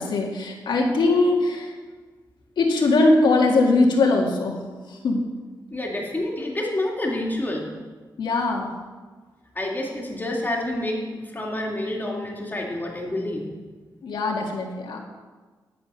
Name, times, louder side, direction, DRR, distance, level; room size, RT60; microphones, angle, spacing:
voice 1, 0.0-1.7 2.6-4.6 4.9-5.2 8.2-8.7 14.0-15.0, left 2 dB, 85° left, 0 dB, 1.8 m, -21 dB
voice 2, 5.7-7.7 9.5-13.5, left 1 dB, 25° left, -2 dB, 2.5 m, -28 dB
11.0 x 7.8 x 5.6 m, 1.4 s
cardioid pair, 90°, 8 cm